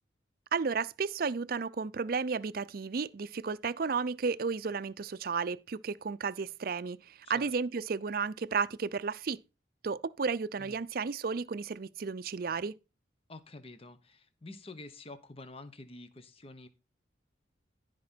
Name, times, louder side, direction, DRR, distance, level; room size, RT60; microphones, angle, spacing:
voice 1, 0.5-9.4 9.8-12.7, right 5 dB, 55° right, 0.5 m, -33 dB
voice 2, 13.3-16.7, left 2 dB, 30° left, 1.0 m, -48 dB
14.5 x 5.1 x 4.4 m
head